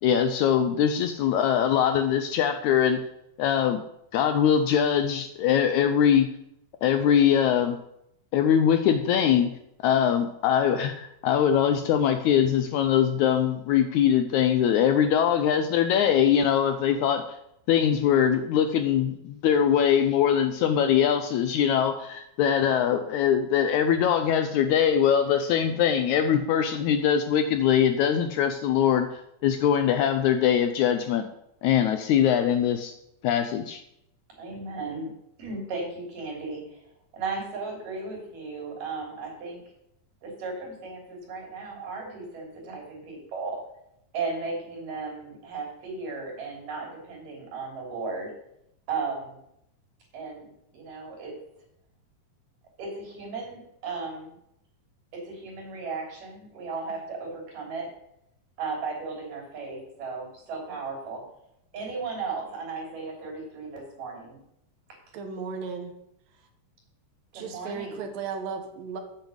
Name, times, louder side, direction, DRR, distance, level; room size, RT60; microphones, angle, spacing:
voice 1, 0.0-3.0 3.4-3.8 4.1-6.3 6.8-7.8 8.3-9.5 9.8-17.2 17.7-31.3 31.6-32.9 33.2-33.8, left 9 dB, 80° left, 8 dB, 1.8 m, -22 dB
voice 2, 34.3-35.1 35.4-36.8 37.1-39.6 40.2-43.6 44.1-48.3 48.9-49.4 50.1-50.5 50.7-51.4 52.8-54.4 55.1-57.9 58.6-61.2 61.7-64.4 67.3-68.0, right 4 dB, 75° right, -1 dB, 4.9 m, -35 dB
voice 3, 65.1-66.0 67.3-69.0, right 5 dB, 90° right, 6 dB, 3.0 m, -35 dB
8.1 x 6.5 x 8.0 m, 0.78 s
omnidirectional pair, 3.9 m